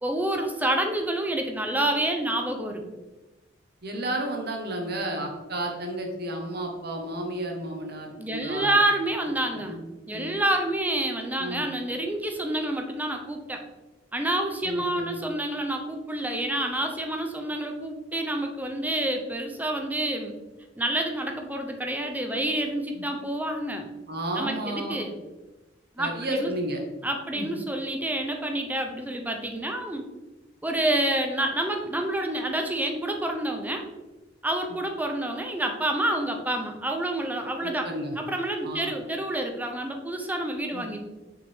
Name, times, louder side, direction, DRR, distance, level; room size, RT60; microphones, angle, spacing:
voice 1, 0.0-2.8 8.2-9.8 10.1-13.6 14.1-20.3 20.8-23.9 24.4-25.1 26.0-26.5 27.0-30.1 30.6-33.8 34.4-37.9 38.2-41.0, right 1 dB, 10° right, 3 dB, 0.6 m, -28 dB
voice 2, 3.8-8.8 9.7-9.8 10.1-10.3 11.4-11.6 14.6-15.2 22.9-23.0 24.1-25.0 26.0-26.8 27.3-27.5 37.6-38.2 38.6-38.9 40.7-40.9, right 1 dB, 55° right, 2 dB, 1.1 m, -32 dB
6.0 x 4.5 x 3.5 m, 1.1 s
head